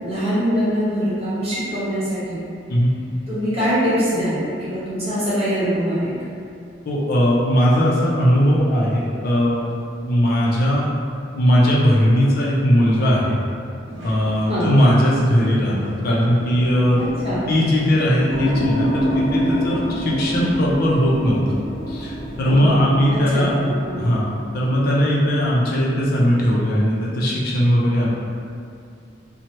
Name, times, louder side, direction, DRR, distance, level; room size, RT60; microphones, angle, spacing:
voice 1, 0.0-2.4 3.3-6.2 14.5-14.7 16.9-17.5 22.4-22.8 23.1-24.0, equal, 35° right, -12 dB, 1.2 m, -23 dB
voice 2, 6.9-9.7 10.0-10.9 11.3-13.4 14.0-17.0 17.5-21.6 21.9-28.1, equal, 55° left, -5 dB, 0.4 m, -19 dB
sound 1, 13.9-20.6, right 1 dB, 80° right, 0.7 m, -36 dB
sound 2, 18.3-26.6, equal, 50° right, 1.0 m, -27 dB
3.0 x 2.1 x 2.8 m, 2.4 s
head